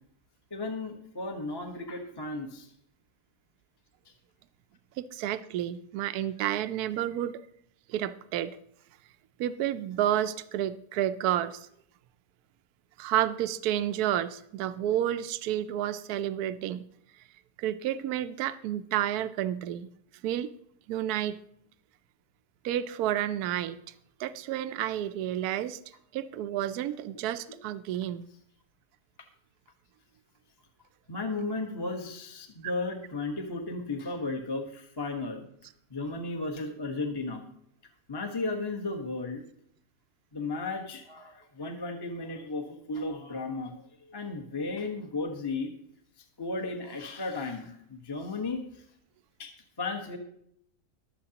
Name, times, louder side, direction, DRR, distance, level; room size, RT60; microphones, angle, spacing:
voice 1, 0.5-2.7 27.5-27.6 31.1-35.5 35.9-37.5 38.1-39.4 40.3-45.7 46.4-48.8 49.4-50.2, left 3 dB, 15° left, 3 dB, 1.1 m, -35 dB
voice 2, 5.0-7.4 7.9-8.6 9.4-11.7 13.0-16.8 17.6-19.9 20.2-20.5 20.9-21.4 22.6-23.8 24.2-25.8 26.1-28.3, right 11 dB, 80° right, 12 dB, 1.1 m, -30 dB
23.0 x 7.7 x 2.9 m, 0.71 s
omnidirectional pair, 1.7 m